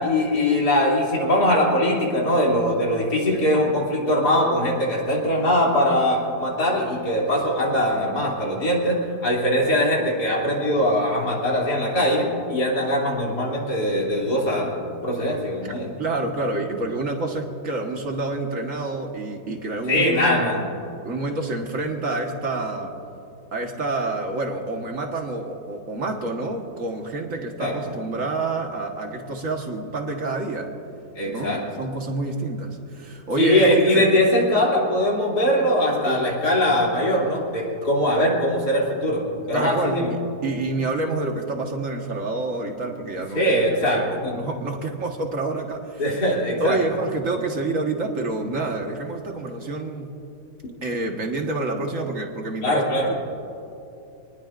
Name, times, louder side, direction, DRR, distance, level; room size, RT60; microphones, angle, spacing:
voice 1, 0.0-14.7 15.0-15.9 19.9-20.7 27.6-28.0 31.1-31.6 33.4-39.2 39.5-40.1 43.3-44.3 46.0-46.8 52.6-53.1, left 1 dB, 70° left, -3 dB, 3.6 m, -21 dB
voice 2, 15.6-20.1 21.0-23.0 23.5-30.7 31.2-34.1 36.0-36.2 39.5-40.0 40.4-43.5 44.0-46.0 46.6-50.1 50.8-53.2, right 2 dB, 50° right, 2 dB, 1.8 m, -28 dB
27.0 x 19.5 x 2.6 m, 2.8 s
omnidirectional pair, 1.8 m